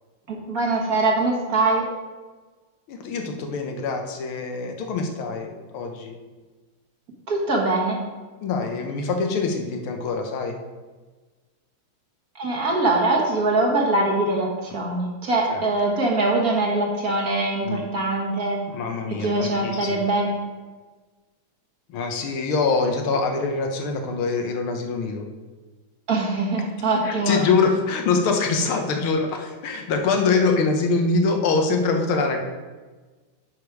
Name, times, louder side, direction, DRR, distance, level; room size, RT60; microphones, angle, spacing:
voice 1, 0.3-1.8 7.3-8.0 12.4-18.6 19.2-20.4 26.1-27.4, right 2 dB, 45° right, -1 dB, 1.7 m, -22 dB
voice 2, 2.9-6.2 8.4-10.6 15.5-15.6 17.6-17.9 18.7-20.1 21.9-25.3 27.0-32.4, left 4 dB, 85° left, 4 dB, 1.9 m, -24 dB
10.0 x 5.1 x 4.7 m, 1.3 s
omnidirectional pair, 2.3 m